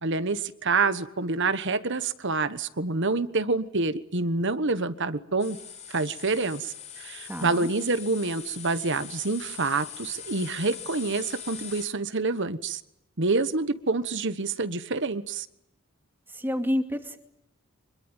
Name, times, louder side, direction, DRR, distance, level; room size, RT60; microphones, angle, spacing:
voice 1, 0.0-5.6 5.9-12.8 13.2-15.5, right 3 dB, 55° right, 13 dB, 1.3 m, -27 dB
sound 1, 5.4-11.8, left 7 dB, 30° left, 4.2 m, -42 dB
voice 2, 7.3-7.7 16.3-17.2, left 1 dB, 10° right, 6 dB, 2.4 m, -29 dB
26.0 x 22.0 x 9.0 m, 0.82 s
head